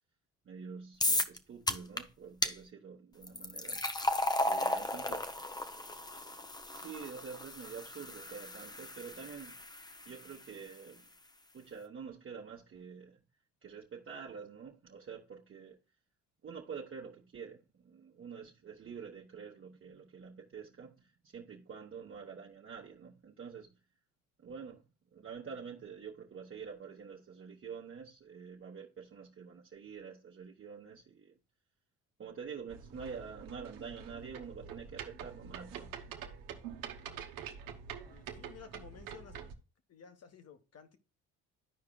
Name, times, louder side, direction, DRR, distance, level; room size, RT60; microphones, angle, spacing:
voice 1, 0.4-3.9 4.4-5.3 6.7-11.1 11.5-13.2 13.6-15.8 16.4-23.8 24.4-31.4 32.2-35.9, right 6 dB, 40° right, 1.1 m, -47 dB
sound 1, 1.0-1.4 1.7-2.0 2.4-2.5 3.2-10.4, left 2 dB, 10° left, 0.6 m, -35 dB
sound 2, 32.7-39.5, right 8 dB, 80° right, 1.0 m, -46 dB
voice 2, 38.0-39.6 39.9-41.0, left 7 dB, 50° left, 1.3 m, -54 dB
13.5 x 4.8 x 2.3 m
supercardioid pair, 80°, 33 cm